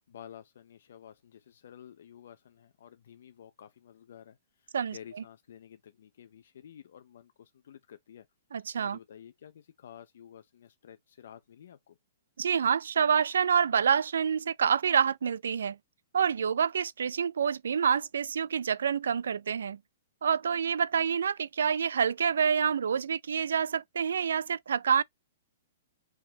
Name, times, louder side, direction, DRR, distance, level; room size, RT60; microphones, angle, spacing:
voice 1, 0.0-8.3 8.8-12.0, left 9 dB, 60° left, 0.7 m, -51 dB
voice 2, 8.5-9.0 12.4-15.8 16.1-19.8 20.2-25.0, right 7 dB, 90° right, 0.4 m, -27 dB
4.7 x 3.7 x 2.9 m
hypercardioid pair, 170°, 0 cm